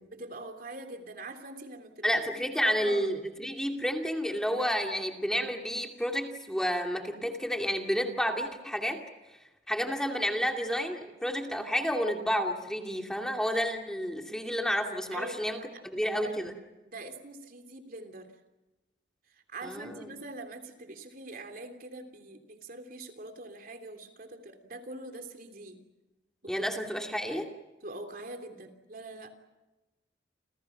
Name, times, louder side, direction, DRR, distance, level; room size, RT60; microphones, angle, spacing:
voice 1, 0.1-2.2 2.5-3.0 15.1-15.8 16.1-16.3 16.8-18.3 19.3-25.8 26.4-26.6 27.8-29.3, right 2 dB, 55° right, 6 dB, 3.3 m, -43 dB
voice 2, 2.0-9.0 9.7-16.5 19.6-20.1 26.5-27.5, equal, 5° left, 3 dB, 2.5 m, -30 dB
29.5 x 28.5 x 5.9 m, 1.0 s
head